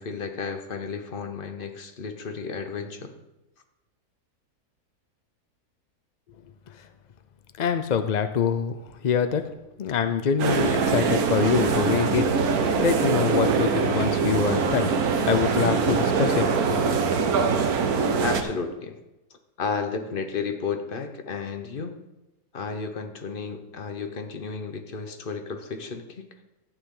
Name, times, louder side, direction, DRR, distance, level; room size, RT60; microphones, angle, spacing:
voice 1, 0.0-3.2 18.2-19.0 19.6-22.0 22.5-26.3, left 5 dB, 40° left, 7 dB, 1.0 m, -32 dB
voice 2, 7.6-9.5 9.8-12.3 12.8-15.0 15.3-17.0, left 7 dB, 75° left, 9 dB, 0.4 m, -25 dB
sound 1, 10.4-18.4, right 5 dB, 75° right, 1.4 m, -23 dB
13.0 x 8.8 x 3.8 m, 1.0 s
omnidirectional pair, 1.6 m